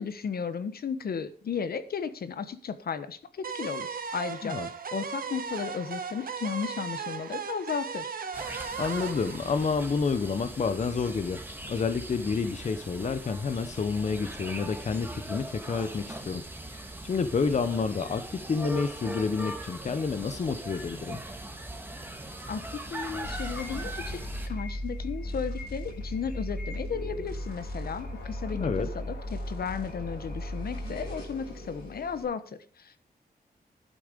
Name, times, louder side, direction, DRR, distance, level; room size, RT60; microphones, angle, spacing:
voice 1, 0.0-4.6 4.9-8.1 22.5-33.0, left 6 dB, 70° left, 12 dB, 1.2 m, -35 dB
sound 1, 3.4-10.4, right 5 dB, 60° right, 1.4 m, -37 dB
sound 2, 8.3-24.5, right 1 dB, 15° right, 1.8 m, -40 dB
voice 2, 8.8-11.4 11.7-16.4 16.7-21.2 28.6-28.9, left 5 dB, 45° left, 10 dB, 0.8 m, -29 dB
sound 3, 23.2-32.2, equal, 85° left, 7.7 m, -36 dB
11.5 x 8.6 x 5.1 m, 0.40 s
wide cardioid pair, 110°, 16 cm